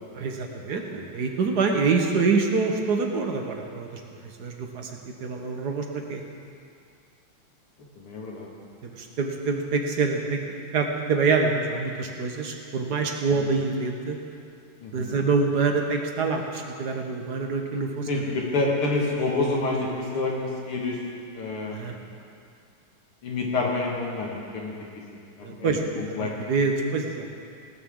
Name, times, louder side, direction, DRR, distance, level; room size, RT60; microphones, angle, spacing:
voice 1, 0.1-4.0 4.4-4.9 5.2-6.2 8.8-10.4 10.7-14.2 14.9-18.1 21.7-21.9 25.4-27.3, right 4 dB, 55° right, 3 dB, 1.4 m, -26 dB
voice 2, 8.0-8.5 13.4-13.5 14.8-15.2 18.1-21.0 21.3-21.9 23.2-24.7 25.4-26.3, left 3 dB, 80° left, -2 dB, 2.8 m, -28 dB
18.0 x 13.0 x 3.8 m, 2.4 s
omnidirectional pair, 2.4 m